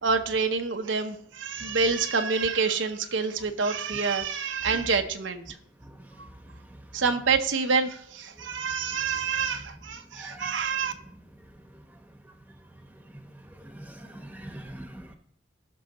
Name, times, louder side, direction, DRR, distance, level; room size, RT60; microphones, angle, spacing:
voice 1, 0.0-5.4 6.2-6.3 6.9-10.9, right 5 dB, 85° right, 0.9 m, -27 dB
voice 2, 10.1-10.6 13.6-15.2, right 1 dB, 10° right, 1.0 m, -42 dB
17.0 x 6.2 x 3.0 m
head